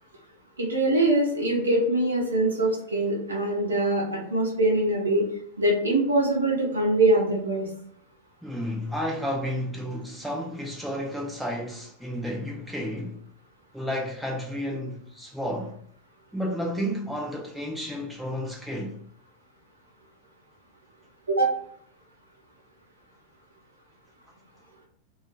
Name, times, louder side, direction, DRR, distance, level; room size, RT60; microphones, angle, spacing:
voice 1, 0.6-5.3 5.6-7.7 21.3-21.5, right 2 dB, 75° right, 0.7 m, -23 dB
voice 2, 8.4-13.2 13.7-15.7 16.3-19.0, equal, ahead, 0.5 m, -31 dB
2.4 x 2.0 x 3.1 m
figure-of-eight pair, 90°, 0 cm